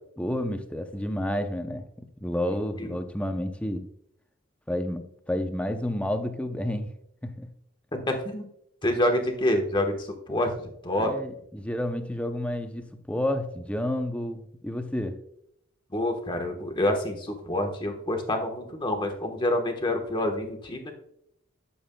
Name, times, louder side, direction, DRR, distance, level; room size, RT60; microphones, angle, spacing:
voice 1, 0.2-3.9 4.7-6.9 7.2-7.5 11.0-15.2, left 1 dB, 5° left, 0.6 m, -30 dB
voice 2, 7.9-8.5 8.8-10.5 10.8-11.1 15.9-20.9, left 1 dB, 25° left, 1.2 m, -27 dB
12.5 x 7.0 x 2.3 m
head